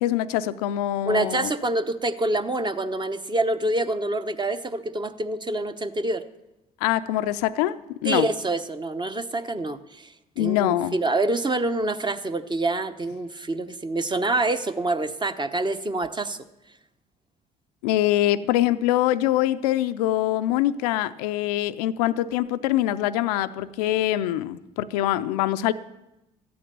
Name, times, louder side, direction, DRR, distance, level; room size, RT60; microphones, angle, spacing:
voice 1, 0.0-1.5 6.8-8.3 10.4-11.0 17.8-25.7, left 13 dB, 80° left, 13 dB, 0.4 m, -24 dB
voice 2, 1.0-6.2 8.0-16.4, right 2 dB, 25° right, 10 dB, 0.9 m, -26 dB
13.0 x 8.6 x 6.8 m, 0.93 s
hypercardioid pair, 55°, 20 cm